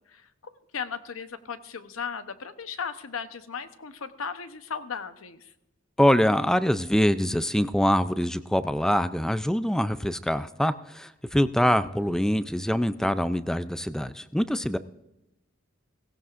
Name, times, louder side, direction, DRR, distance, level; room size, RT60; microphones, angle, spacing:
voice 1, 0.7-5.5, left 6 dB, 85° left, 10 dB, 0.9 m, -36 dB
voice 2, 6.0-14.8, equal, 5° left, 13 dB, 0.4 m, -24 dB
17.0 x 16.5 x 2.5 m, 0.90 s
head